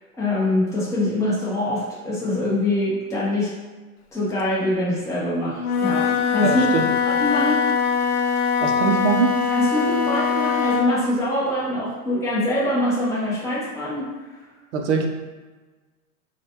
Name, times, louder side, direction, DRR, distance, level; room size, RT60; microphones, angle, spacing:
voice 1, 0.2-3.5 4.1-6.7 7.1-8.1 9.5-14.1, left 1 dB, 5° left, -8 dB, 0.8 m, -24 dB
Wind instrument woodwind instrument, 5.6-11.0, left 6 dB, 85° left, 0.5 m, -22 dB
voice 2, 6.4-6.8 8.6-9.3 14.7-15.1, right 6 dB, 55° right, 4 dB, 0.6 m, -22 dB
3.1 x 2.3 x 2.8 m, 1.3 s
hypercardioid pair, 105°, 44 cm